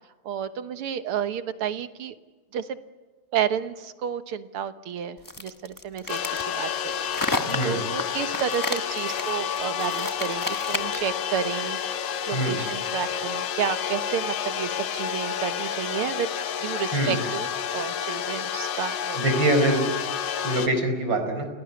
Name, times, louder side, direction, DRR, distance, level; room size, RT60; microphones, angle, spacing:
voice 1, 0.3-2.2 2.5-2.7 3.3-6.2 6.5-11.8 12.3-19.2, right 8 dB, 85° right, 10 dB, 2.1 m, -31 dB
sound 1, 5.2-11.1, left 2 dB, 20° left, 0.6 m, -32 dB
sound 2, 6.1-20.7, left 8 dB, 60° left, 1.6 m, -30 dB
voice 2, 7.5-7.8 12.3-12.6 16.9-17.2 19.2-19.8 20.4-21.5, right 1 dB, 55° right, 5 dB, 5.4 m, -24 dB
29.5 x 18.0 x 9.6 m, 1.3 s
omnidirectional pair, 2.4 m